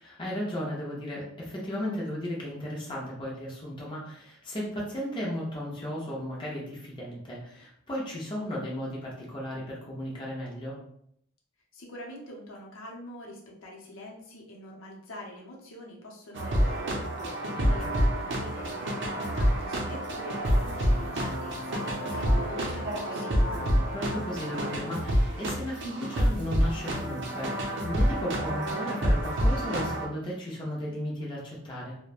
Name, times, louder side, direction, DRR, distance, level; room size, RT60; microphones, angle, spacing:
voice 1, 0.0-10.8 17.5-17.7 23.9-32.0, equal, 25° left, -5 dB, 0.6 m, -35 dB
voice 2, 11.7-23.7, left 1 dB, 70° left, -2 dB, 0.7 m, -45 dB
sound 1, 16.3-30.0, equal, 60° right, 0.5 m, -28 dB
2.9 x 2.1 x 2.4 m, 0.70 s
head